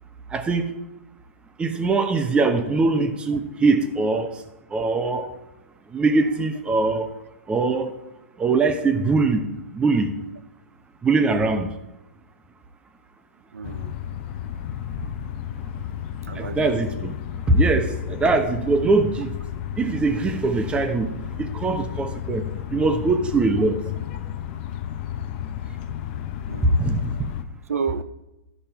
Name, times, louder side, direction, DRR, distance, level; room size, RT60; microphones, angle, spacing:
voice 1, 0.3-0.7 1.6-4.3 4.7-5.3 5.9-7.1 7.5-7.9 8.4-9.4 9.7-10.1 11.0-11.7 16.4-17.1 17.5-19.3 19.8-21.1 21.4-22.4 22.7-23.8 26.6-27.1, right 3 dB, 15° right, 1.0 m, -21 dB
voice 2, 13.5-13.9 16.2-16.8 26.5-26.8 27.7-28.0, right 6 dB, 80° right, 0.5 m, -30 dB
sound 1, 13.6-27.4, left 10 dB, 45° left, 0.8 m, -33 dB
13.5 x 5.4 x 4.5 m
hypercardioid pair, 125°, 8 cm